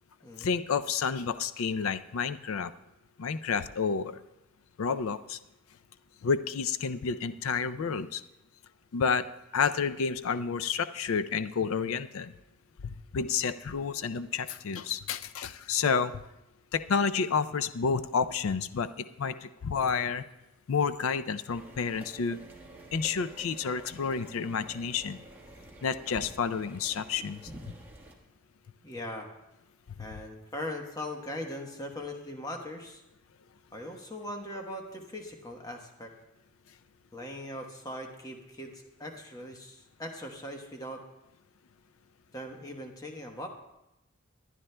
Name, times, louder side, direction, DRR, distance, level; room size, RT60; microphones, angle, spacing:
voice 1, 0.4-2.7 3.2-4.2 4.8-5.4 6.2-8.2 8.9-9.3 9.5-12.3 12.8-16.1 16.7-20.2 20.7-22.4 22.9-25.2 25.8-27.4 30.0-30.1, left 5 dB, 80° left, 12 dB, 0.4 m, -30 dB
sound 1, 21.5-28.2, right 1 dB, 10° right, 1.3 m, -49 dB
voice 2, 28.8-29.3 30.0-33.0 33.7-36.1 37.1-41.0 42.3-43.5, left 1 dB, 15° left, 3 dB, 1.0 m, -40 dB
24.5 x 11.0 x 2.2 m, 0.92 s
head